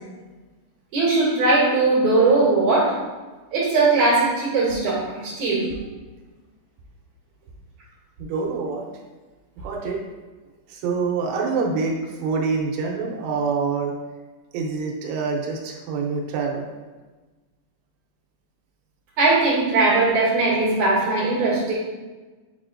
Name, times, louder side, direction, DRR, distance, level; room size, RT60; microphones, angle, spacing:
voice 1, 0.9-2.9 3.5-5.6 19.2-21.7, right 3 dB, 50° right, -9 dB, 3.0 m, -19 dB
voice 2, 8.2-8.9 9.6-10.2 10.7-13.9 14.5-16.7, right 4 dB, 80° right, 0 dB, 3.0 m, -26 dB
9.8 x 4.2 x 2.5 m, 1.3 s
omnidirectional pair, 5.3 m